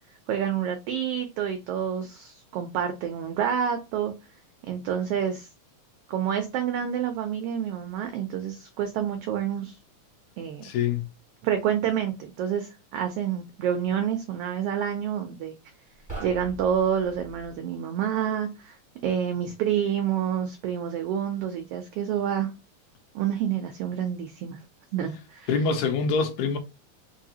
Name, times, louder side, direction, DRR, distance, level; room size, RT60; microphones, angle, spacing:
voice 1, 0.3-4.1 4.6-5.5 6.1-9.8 10.4-10.6 11.4-15.6 16.2-18.8 19.0-22.5 23.1-24.6 24.9-25.5, right 9 dB, 85° right, 1.3 m, -28 dB
voice 2, 10.6-11.1 25.5-26.6, left 5 dB, 80° left, 2.1 m, -25 dB
sound 1, 16.0-17.6, right 2 dB, 25° right, 0.6 m, -41 dB
4.8 x 2.6 x 2.7 m
omnidirectional pair, 3.3 m